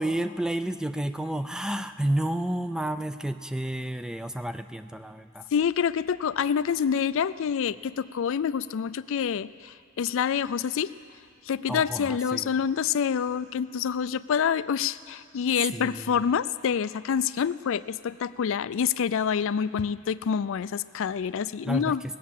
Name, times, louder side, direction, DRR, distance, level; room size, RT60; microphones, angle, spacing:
voice 1, 0.0-5.4 11.7-12.5 15.7-15.9 21.6-21.9, right 1 dB, 5° right, 10 dB, 0.4 m, -30 dB
voice 2, 5.5-10.9 11.5-22.0, left 7 dB, 65° left, 16 dB, 0.4 m, -27 dB
19.5 x 8.6 x 7.3 m, 2.3 s
head